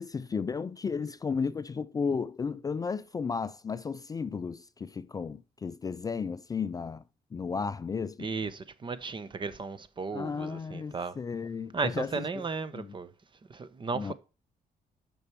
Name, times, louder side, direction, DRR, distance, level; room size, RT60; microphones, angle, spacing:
voice 1, 0.0-7.0 7.3-8.3 10.1-12.5 12.7-12.9 13.9-14.1, left 5 dB, 25° left, 0.3 m, -34 dB
voice 2, 8.2-11.1 11.7-13.1 13.5-14.1, right 4 dB, 35° right, 0.9 m, -35 dB
6.6 x 6.1 x 4.4 m
cardioid pair, 105°, 15 cm